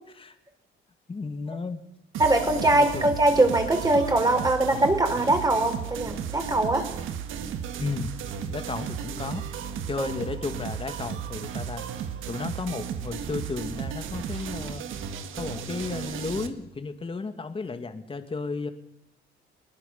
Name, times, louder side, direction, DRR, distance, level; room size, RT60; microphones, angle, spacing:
voice 1, 1.1-1.8 2.7-3.0 7.8-8.1 8.5-9.4 9.9-11.8 12.3-14.8 15.3-18.7, left 4 dB, 25° left, 8 dB, 1.7 m, -33 dB
sound 1, 2.1-16.5, right 8 dB, 85° right, 1.7 m, -34 dB
voice 2, 2.2-6.8 10.0-10.1, right 2 dB, 20° right, 4 dB, 5.0 m, -22 dB
21.5 x 19.0 x 6.9 m, 0.83 s
cardioid pair, 90°, 20 cm